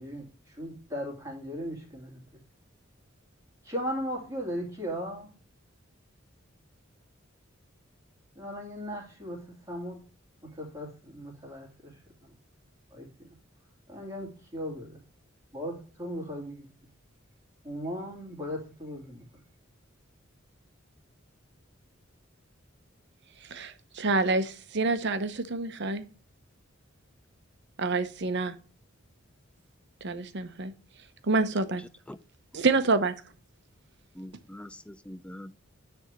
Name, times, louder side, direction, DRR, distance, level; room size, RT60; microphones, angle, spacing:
voice 1, 0.0-2.4 3.6-5.4 8.3-10.0 10.5-12.3 12.9-13.1 13.9-15.0 15.5-16.7 17.6-19.2, equal, 15° right, 2.6 m, -37 dB
voice 2, 23.5-26.1 27.8-28.5 30.0-30.7 31.2-31.8 32.5-33.1, right 3 dB, 60° right, 0.9 m, -27 dB
voice 3, 34.2-35.5, left 1 dB, 5° left, 0.3 m, -43 dB
9.5 x 3.5 x 6.6 m
head